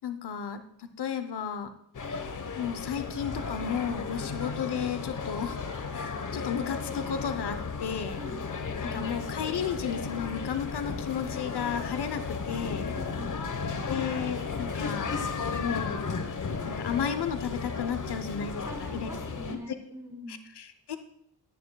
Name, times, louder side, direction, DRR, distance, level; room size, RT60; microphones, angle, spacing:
voice 1, 0.0-1.7 2.6-5.6 5.9-8.2 8.8-12.9 13.8-15.1 15.6-16.0 16.6-19.1 19.5-19.6 20.3-21.0, left 7 dB, 75° left, 9 dB, 0.9 m, -33 dB
sound 1, 1.9-19.6, left 5 dB, 50° left, 1.2 m, -34 dB
voice 2, 8.8-9.2 12.9-13.4 18.6-20.5, right 1 dB, 10° right, -1 dB, 3.6 m, -43 dB
16.0 x 10.5 x 2.3 m, 0.72 s
cardioid pair, 70°, 41 cm